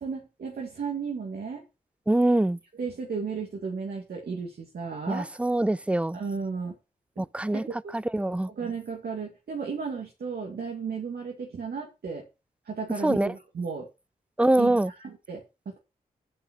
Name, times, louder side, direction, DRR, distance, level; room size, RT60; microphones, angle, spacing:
voice 1, 0.0-1.6 2.7-5.3 6.1-6.8 7.2-7.3 7.5-8.0 8.5-12.3 12.7-13.9 14.6-15.8, right 5 dB, 70° right, 2.1 m, -34 dB
voice 2, 2.1-2.6 5.1-6.2 7.2-7.6 7.9-8.5 13.0-13.3 14.4-14.9, right 1 dB, 5° right, 0.4 m, -24 dB
9.6 x 5.7 x 6.0 m
cardioid pair, 45°, 17 cm